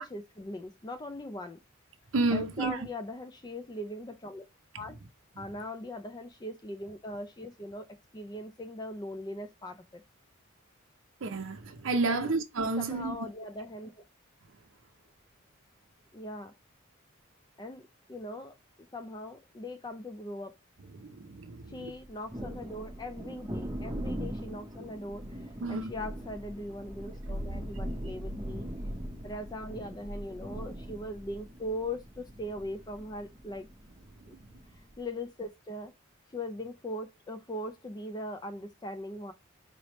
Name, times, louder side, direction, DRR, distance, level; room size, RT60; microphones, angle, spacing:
voice 1, 0.0-1.6 2.3-4.5 4.7-5.0 5.4-7.9 8.1-10.0 12.1-12.3 12.8-14.0 16.1-16.5 17.6-18.6 18.9-20.6 21.7-25.4 25.7-28.7 29.2-33.7 34.3-34.4 34.7-35.9 36.3-39.3, left 1 dB, 20° left, 0.4 m, -40 dB
voice 2, 2.1-2.9 11.2-13.2 20.9-21.9 25.6-25.9 27.3-27.6 28.9-29.1, right 3 dB, 70° right, 0.6 m, -31 dB
Thunder, 21.8-35.0, equal, 20° right, 0.7 m, -41 dB
4.0 x 3.3 x 2.9 m
head